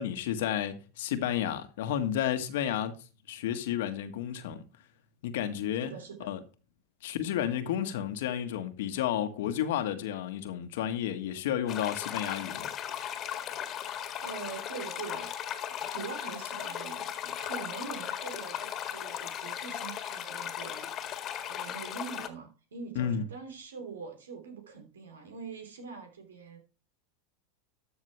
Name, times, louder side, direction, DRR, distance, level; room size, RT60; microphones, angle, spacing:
voice 1, 0.0-3.0 3.3-4.6 5.2-5.9 6.2-6.4 7.0-12.7 22.9-23.2, left 10 dB, 70° left, 1.5 m, -31 dB
voice 2, 5.8-6.3 14.2-15.4 15.8-20.9 21.5-26.6, right 5 dB, 90° right, 3.1 m, -43 dB
sound 1, 11.7-22.3, left 10 dB, 40° left, 1.8 m, -37 dB
13.0 x 6.5 x 3.3 m
hypercardioid pair, 100°, 0 cm